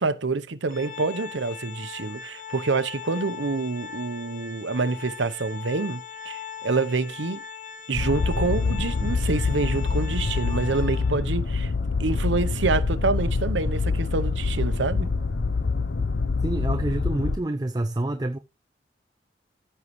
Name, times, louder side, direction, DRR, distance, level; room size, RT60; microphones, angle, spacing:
voice 1, 0.0-7.4 7.9-11.7 12.0-15.1, right 3 dB, 85° right, 0.8 m, -27 dB
Organ, 0.7-11.4, left 7 dB, 45° left, 0.9 m, -40 dB
sound 1, 7.9-17.4, left 4 dB, 75° left, 0.6 m, -25 dB
voice 2, 16.4-18.4, right 1 dB, 20° right, 0.4 m, -27 dB
15.0 x 5.5 x 3.1 m
head